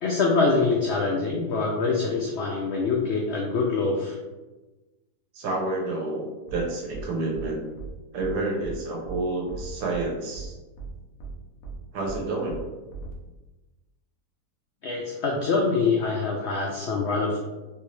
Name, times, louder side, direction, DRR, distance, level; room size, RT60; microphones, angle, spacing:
voice 1, 0.0-4.2 14.8-17.4, left 4 dB, 85° left, -1 dB, 0.6 m, -24 dB
voice 2, 5.3-6.2 6.5-7.6 8.1-10.5 11.9-12.6, right 2 dB, 90° right, -1 dB, 1.4 m, -29 dB
sound 1, 6.5-6.6 6.9-7.0 7.3-7.5 7.8-7.9 8.2-8.3 8.6-8.7 9.0-9.2 9.5-10.0 10.3-10.5 10.8-10.9 11.2-11.3 11.6-11.7 12.0-12.2 12.5-12.6 12.9-13.1, right 5 dB, 65° left, 1.1 m, -38 dB
3.4 x 2.7 x 3.0 m, 1.2 s
omnidirectional pair, 1.7 m